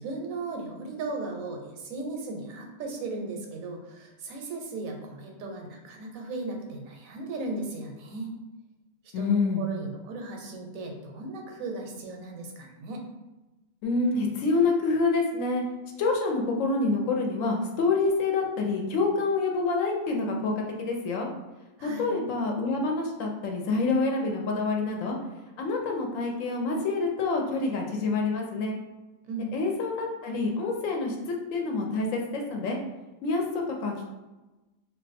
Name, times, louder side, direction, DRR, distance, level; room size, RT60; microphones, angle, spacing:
voice 1, 0.0-8.3 9.2-13.0 21.8-22.1 29.2-29.5, right 2 dB, 80° right, 2 dB, 1.0 m, -36 dB
voice 2, 9.1-9.6 13.8-15.6 16.0-20.5 20.8-21.3 21.8-25.2 25.6-28.8 29.5-32.8 33.2-34.1, left 3 dB, 75° left, 1 dB, 0.9 m, -27 dB
2.5 x 2.2 x 4.0 m, 1.1 s
omnidirectional pair, 1.4 m